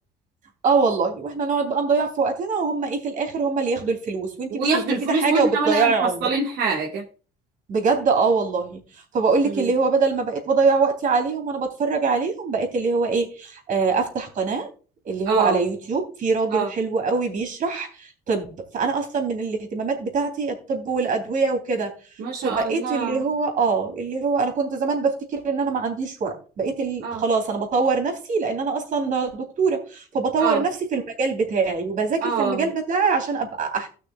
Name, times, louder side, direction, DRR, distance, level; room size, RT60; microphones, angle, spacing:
voice 1, 0.6-4.7 5.1-6.3 7.7-8.8 9.1-14.7 15.0-18.5 18.7-21.9 22.4-33.9, right 4 dB, 50° right, 3 dB, 3.3 m, -23 dB
voice 2, 4.5-7.0 9.4-9.7 15.3-15.6 16.5-16.7 22.2-23.2 27.0-27.2 30.4-30.6 32.2-32.7, right 4 dB, 75° right, -3 dB, 1.9 m, -25 dB
17.0 x 6.2 x 2.4 m, 0.37 s
cardioid pair, 110°, 17 cm